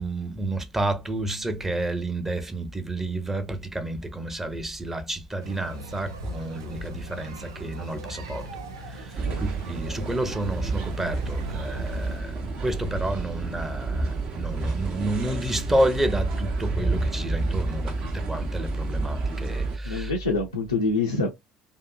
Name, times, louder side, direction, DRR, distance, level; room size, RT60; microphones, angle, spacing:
voice 1, 0.0-20.1, right 1 dB, 15° right, 0.7 m, -29 dB
sound 1, 5.4-12.2, right 2 dB, 80° right, 0.5 m, -40 dB
sound 2, 9.2-19.8, right 4 dB, 55° right, 0.8 m, -31 dB
voice 2, 19.8-21.3, left 3 dB, 90° left, 0.4 m, -26 dB
2.7 x 2.5 x 2.2 m
figure-of-eight pair, 60°, 2 cm